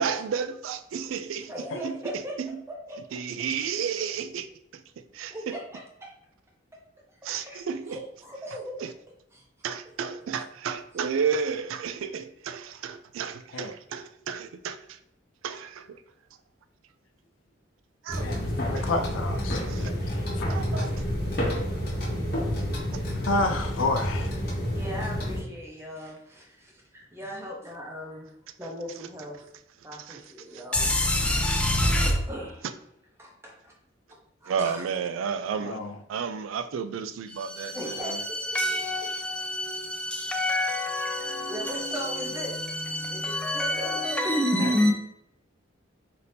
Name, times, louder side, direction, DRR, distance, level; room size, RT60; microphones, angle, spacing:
voice 1, 0.0-1.5 1.8-1.9 2.4-2.5 3.1-4.5 4.7-5.6 7.2-8.0 8.8-8.9 9.6-15.0 15.4-16.0 18.0-18.3 18.8-18.9 19.7-19.9 20.5-21.0 22.9-23.0 30.1-30.2 30.5-30.6 34.5-35.8 36.1-38.2, right 6 dB, 85° right, 0.3 m, -32 dB
voice 2, 1.5-3.0 5.3-6.1 7.4-7.6 7.9-8.8 9.3-9.4 24.5-29.5 29.8-30.9 31.9-32.7 33.2-33.7 34.4-34.8 37.7-38.8 39.4-39.5 40.1-40.2 41.0-41.2 41.5-42.6 43.1-44.0, equal, 15° right, 0.8 m, -39 dB
sound 1, 18.1-25.4, equal, 50° left, 1.0 m, -29 dB
voice 3, 18.2-19.9 20.4-20.7 23.2-24.3 35.6-35.9 44.6-44.8, left 2 dB, 80° left, 0.5 m, -30 dB
voice 4, 30.7-32.1 37.3-44.9, left 1 dB, 5° left, 0.4 m, -27 dB
4.1 x 2.7 x 3.3 m
head